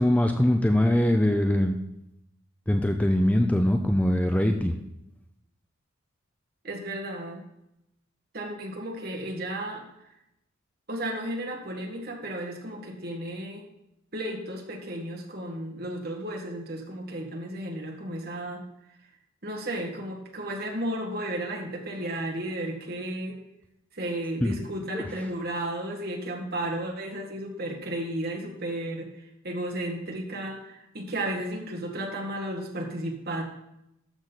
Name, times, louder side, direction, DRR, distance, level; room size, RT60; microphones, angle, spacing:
voice 1, 0.0-1.8 2.7-4.7 24.4-24.5 24.9-25.1, left 1 dB, 5° left, 6 dB, 0.5 m, -22 dB
voice 2, 6.6-7.5 8.3-9.8 10.9-13.7 14.1-18.6 19.4-23.4 23.9-33.4, right 1 dB, 45° right, 1 dB, 1.8 m, -33 dB
12.5 x 6.4 x 4.1 m, 0.85 s
head